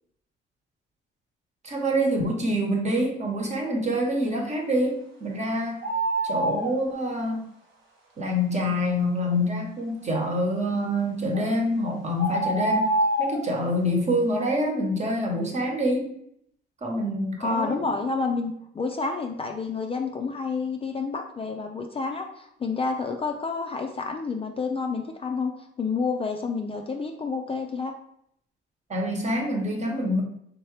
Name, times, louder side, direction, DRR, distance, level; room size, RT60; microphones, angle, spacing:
voice 1, 1.6-5.8 6.2-7.4 8.2-12.8 13.2-16.1 16.8-17.9 28.9-30.2, equal, 35° right, 0 dB, 1.1 m, -26 dB
sound 1, 5.8-6.7 11.3-11.5 12.2-13.4, right 1 dB, 80° right, 1.0 m, -25 dB
voice 2, 17.4-25.5 25.8-27.9, left 4 dB, 30° left, 3 dB, 0.4 m, -29 dB
3.6 x 2.9 x 3.2 m, 0.72 s
cardioid pair, 90°, 20 cm